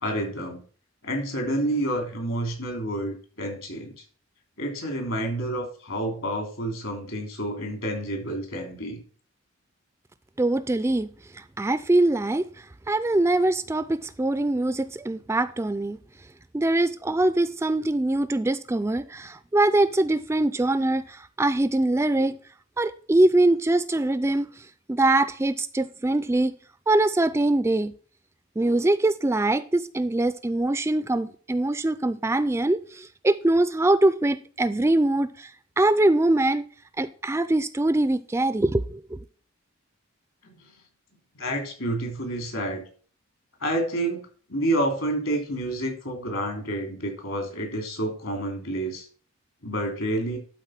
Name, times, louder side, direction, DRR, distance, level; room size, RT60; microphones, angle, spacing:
voice 1, 0.0-0.6 1.0-3.9 4.6-9.0 40.4-40.7 41.3-42.8 43.6-49.1 49.6-50.4, right 1 dB, 70° left, 3.1 m, -29 dB
voice 2, 10.4-11.1 11.3-16.0 16.5-22.4 22.8-26.5 26.9-27.9 28.6-35.5 35.8-36.6 37.0-39.2, right 2 dB, 10° right, 0.3 m, -23 dB
12.0 x 4.2 x 5.9 m
head